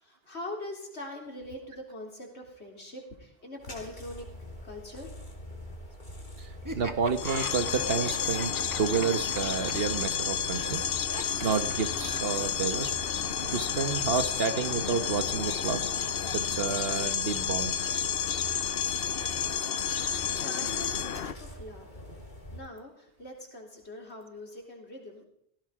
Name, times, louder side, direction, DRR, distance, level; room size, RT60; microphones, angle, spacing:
voice 1, 0.0-4.3 4.6-5.1 20.4-21.9 22.5-25.3, left 1 dB, 90° left, 1 dB, 4.0 m, -42 dB
sound 1, 3.6-22.6, left 1 dB, 45° left, 3.6 m, -44 dB
voice 2, 6.4-8.5 8.8-10.8 11.4-13.0 13.5-15.8 16.3-17.7, right 5 dB, 65° right, 10 dB, 1.3 m, -30 dB
Laughter, 6.6-12.4, right 1 dB, 20° right, 1.1 m, -41 dB
sound 2, 7.1-21.3, left 8 dB, 65° left, 1.0 m, -31 dB
18.0 x 16.0 x 4.9 m, 0.71 s
omnidirectional pair, 1.1 m